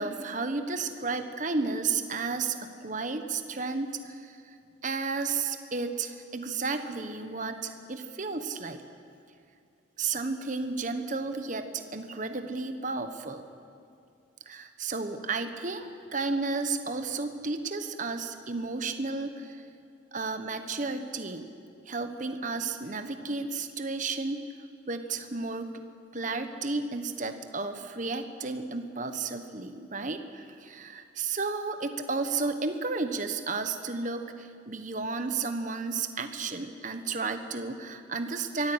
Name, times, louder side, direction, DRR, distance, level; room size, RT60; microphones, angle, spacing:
voice 1, 0.0-4.5 4.8-8.8 10.0-13.4 14.5-19.7 20.1-21.5 21.9-24.4 24.9-25.7 26.1-38.7, right 4 dB, 40° right, 8 dB, 1.1 m, -32 dB
23.5 x 14.5 x 8.0 m, 2.4 s
head